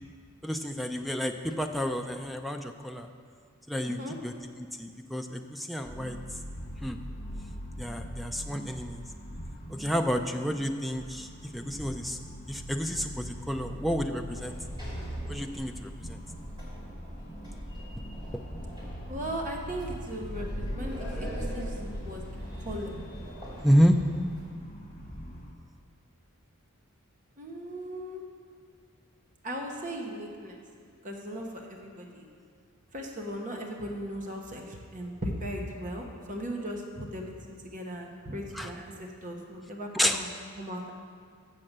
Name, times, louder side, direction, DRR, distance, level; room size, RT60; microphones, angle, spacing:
voice 1, 0.4-3.1 3.7-4.0 4.2-4.3 4.8-6.2 6.8-7.0 7.8-9.0 9.7-11.3 11.5-12.2 12.5-14.6 15.3-16.2 23.6-24.0 38.5-38.7 39.9-40.2, equal, ahead, 5 dB, 0.4 m, -29 dB
voice 2, 3.8-4.2 19.1-22.2 22.6-23.0 27.4-28.2 29.4-30.6 31.0-32.3 32.9-40.3 40.6-40.9, equal, 35° right, 1 dB, 0.9 m, -38 dB
sound 1, 5.8-25.5, equal, 30° left, 1.3 m, -43 dB
Sliding door, 14.3-24.4, equal, 20° right, 2.9 m, -40 dB
7.5 x 6.6 x 7.4 m, 2.1 s
head